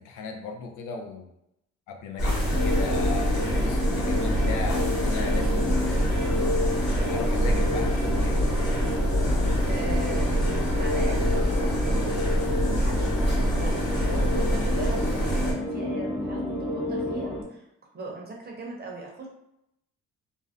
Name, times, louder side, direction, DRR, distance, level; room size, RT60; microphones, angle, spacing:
voice 1, 0.0-1.3 1.9-6.1 7.0-8.8, left 4 dB, 85° left, 3 dB, 0.5 m, -37 dB
sound 1, 2.2-15.5, equal, 35° left, 1.1 m, -25 dB
sound 2, 2.5-17.4, left 1 dB, ahead, 0.8 m, -30 dB
voice 2, 9.7-12.2 12.6-17.6 17.9-19.3, right 2 dB, 35° right, -1 dB, 0.7 m, -39 dB
2.5 x 2.0 x 2.4 m, 0.80 s
cardioid pair, 90°, 30 cm